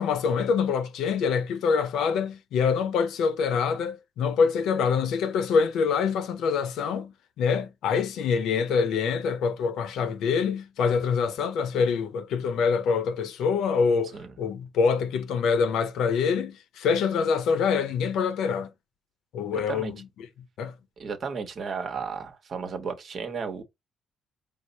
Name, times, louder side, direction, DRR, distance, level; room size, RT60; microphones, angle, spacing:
voice 1, 0.0-18.7 19.3-20.1 20.6-20.7, left 6 dB, 80° left, 0.6 m, -25 dB
voice 2, 19.5-19.9 21.0-23.6, right 5 dB, 55° right, 1.0 m, -34 dB
4.7 x 2.1 x 3.9 m
cardioid pair, 90°, 0 cm